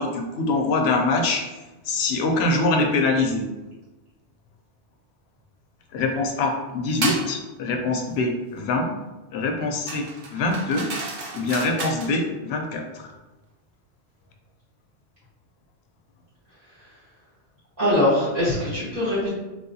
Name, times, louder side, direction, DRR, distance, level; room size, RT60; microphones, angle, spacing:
voice 1, 0.0-1.5 1.8-3.5 5.9-8.9 9.3-10.9 11.3-13.1, left 3 dB, 75° left, 2 dB, 0.8 m, -24 dB
sound 1, 7.0-7.3 9.9-12.1, right 3 dB, 55° right, 0.6 m, -31 dB
voice 2, 17.8-19.3, left 1 dB, 35° right, -11 dB, 1.3 m, -22 dB
3.2 x 2.7 x 2.7 m, 1.1 s
omnidirectional pair, 1.1 m